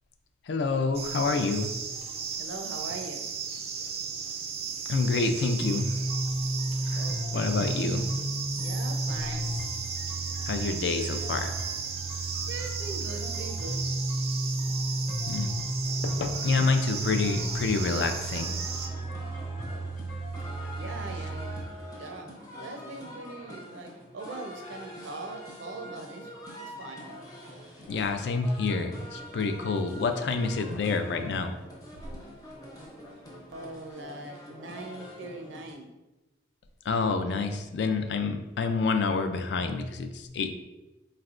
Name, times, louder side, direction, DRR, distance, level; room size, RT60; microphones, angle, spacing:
voice 1, 0.5-1.7 4.9-5.9 6.9-7.0 7.3-8.1 10.5-11.5 15.3-15.5 16.0-18.5 27.9-31.5 36.9-40.5, left 4 dB, 70° left, 7 dB, 0.4 m, -28 dB
sound 1, 0.9-18.9, right 6 dB, 35° right, 0.3 m, -36 dB
voice 2, 2.4-3.2 6.9-7.6 8.6-9.5 12.5-13.8 20.8-21.7 22.0-26.3 26.7-27.1 33.5-35.9, right 2 dB, 85° right, 3 dB, 0.6 m, -41 dB
sound 2, 5.6-21.6, right 1 dB, 45° left, 1.0 m, -33 dB
sound 3, 15.8-35.7, equal, 20° left, 0.6 m, -45 dB
4.2 x 3.2 x 2.4 m, 1.1 s
head